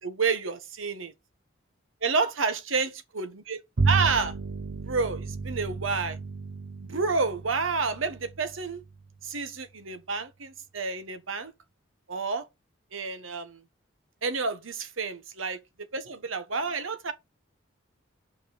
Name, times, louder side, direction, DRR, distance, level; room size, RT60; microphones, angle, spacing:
voice 1, 0.0-1.1 2.0-4.3 4.8-6.2 6.8-8.8 9.2-11.5 12.1-12.5 12.9-13.6 14.2-15.6 15.9-17.1, right 4 dB, 90° right, 1.2 m, -29 dB
Bowed string instrument, 3.8-9.4, right 4 dB, 60° right, 0.7 m, -32 dB
5.9 x 4.7 x 6.5 m
head